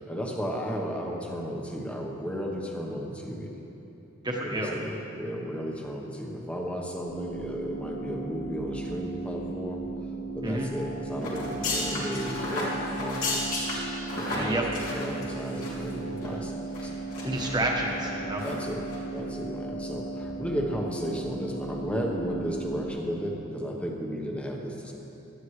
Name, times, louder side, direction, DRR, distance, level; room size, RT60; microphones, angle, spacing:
voice 1, 0.0-3.5 4.4-9.8 10.3-13.5 14.1-17.0 18.4-18.9 19.1-24.9, equal, 5° left, 0 dB, 1.1 m, -34 dB
voice 2, 4.2-4.7 10.4-10.7 14.3-14.6 17.2-18.4, right 1 dB, 20° right, -1 dB, 1.3 m, -29 dB
sound 1, 7.1-22.9, right 2 dB, 50° left, 2.7 m, -36 dB
sound 2, 11.2-15.9 16.2-16.3 16.7-17.5 17.9-18.1 18.4-18.6 18.9-19.0, left 2 dB, 70° left, 3.1 m, -33 dB
17.0 x 12.5 x 3.2 m, 2.9 s
head